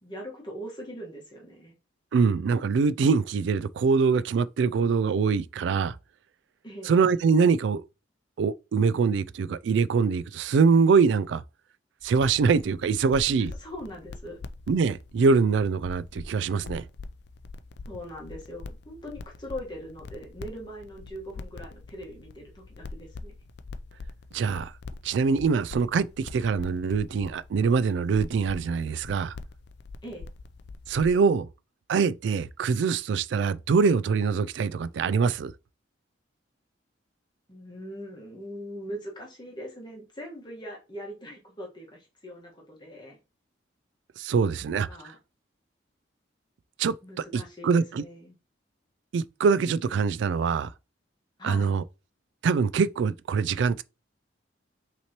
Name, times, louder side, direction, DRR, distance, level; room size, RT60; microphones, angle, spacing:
voice 1, 0.0-1.7 6.6-6.9 13.6-14.4 17.9-23.3 30.0-30.3 37.5-43.2 44.5-45.2 47.0-48.4 51.4-51.7, equal, 25° left, 1.4 m, -41 dB
voice 2, 2.1-6.0 6.8-7.8 8.4-11.4 12.0-13.5 14.7-16.8 24.3-24.7 25.0-29.3 30.9-31.5 31.9-35.5 44.2-44.9 46.8-48.0 49.1-50.7 51.4-51.8 52.4-53.8, right 5 dB, 70° right, 0.3 m, -24 dB
sound 1, 12.0-31.3, left 3 dB, 60° left, 0.4 m, -44 dB
5.7 x 3.0 x 2.9 m
head